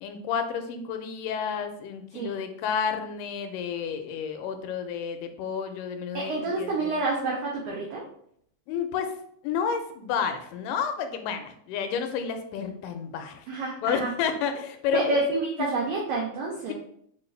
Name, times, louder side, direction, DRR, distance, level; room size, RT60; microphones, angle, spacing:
voice 1, 0.0-7.0 8.7-9.2 9.4-13.5 13.8-15.2 15.6-15.7, left 7 dB, 90° left, 7 dB, 2.2 m, -31 dB
voice 2, 6.1-8.0 13.5-14.1 14.9-16.7, right 2 dB, 90° right, -2 dB, 1.4 m, -28 dB
5.1 x 2.3 x 3.2 m, 0.67 s
omnidirectional pair, 3.7 m